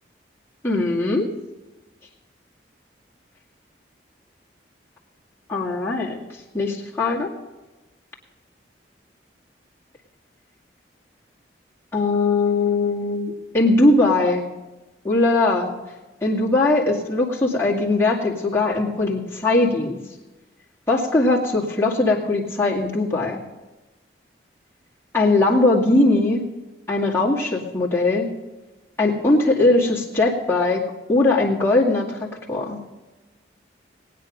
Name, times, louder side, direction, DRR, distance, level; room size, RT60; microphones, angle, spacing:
voice 1, 0.6-1.3 5.5-6.2 6.5-7.3 11.9-14.5 15.0-15.7 16.2-20.0 20.9-23.4 25.1-26.4 26.9-28.3 29.0-30.8 31.1-32.8, left 2 dB, 15° left, -5 dB, 2.1 m, -20 dB
19.5 x 9.3 x 5.2 m, 1.1 s
head